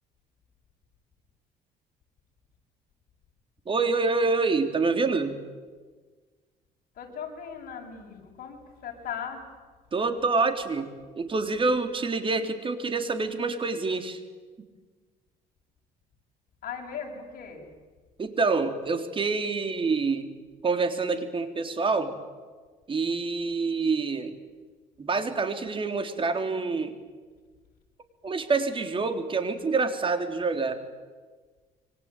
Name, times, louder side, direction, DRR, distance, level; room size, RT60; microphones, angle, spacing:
voice 1, 3.7-5.4 9.9-14.2 18.2-20.4 20.6-22.1 22.9-24.3 25.0-26.9 28.2-30.8, right 4 dB, 30° right, 8 dB, 3.6 m, -27 dB
voice 2, 6.9-9.5 16.6-17.7, left 7 dB, 55° left, 1 dB, 7.9 m, -38 dB
27.0 x 24.0 x 9.2 m, 1.4 s
cardioid pair, 110°, 17 cm